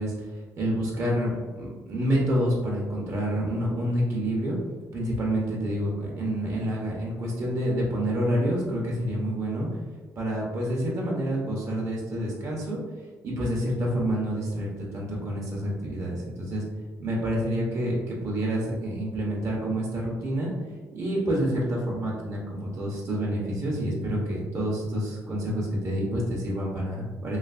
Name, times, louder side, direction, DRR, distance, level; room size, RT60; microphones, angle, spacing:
voice 1, 0.0-4.6 4.9-9.7 10.2-12.8 13.2-16.6 17.0-20.5 20.9-27.4, equal, 50° right, -3 dB, 0.7 m, -28 dB
3.1 x 2.6 x 2.4 m, 1.3 s
cardioid pair, 110°, 7 cm